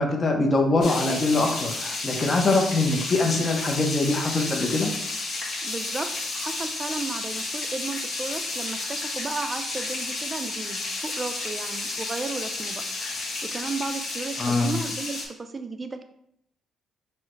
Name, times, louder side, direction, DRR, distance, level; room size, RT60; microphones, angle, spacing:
voice 1, 0.0-4.9 14.4-14.8, left 2 dB, 35° left, 2 dB, 0.8 m, -23 dB
sound 1, 0.8-15.3, left 3 dB, 65° left, 1.1 m, -32 dB
voice 2, 5.6-12.8 13.4-16.0, right 3 dB, 30° right, 8 dB, 0.5 m, -34 dB
4.6 x 2.1 x 4.5 m, 0.74 s
cardioid pair, 90°, 0 cm